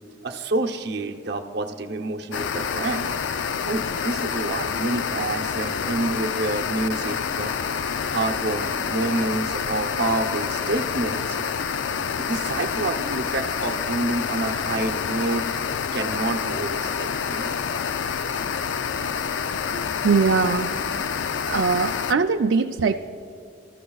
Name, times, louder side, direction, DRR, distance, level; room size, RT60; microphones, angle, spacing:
voice 1, 0.2-3.1 3.7-7.5 8.1-11.5 12.2-15.4 15.9-17.5, right 2 dB, 60° right, 4 dB, 0.8 m, -28 dB
sound 1, 2.3-22.1, left 6 dB, 85° left, 0.4 m, -27 dB
voice 2, 19.7-20.9 21.5-22.9, right 5 dB, 90° right, 4 dB, 0.5 m, -22 dB
25.5 x 13.5 x 2.3 m, 2.5 s
head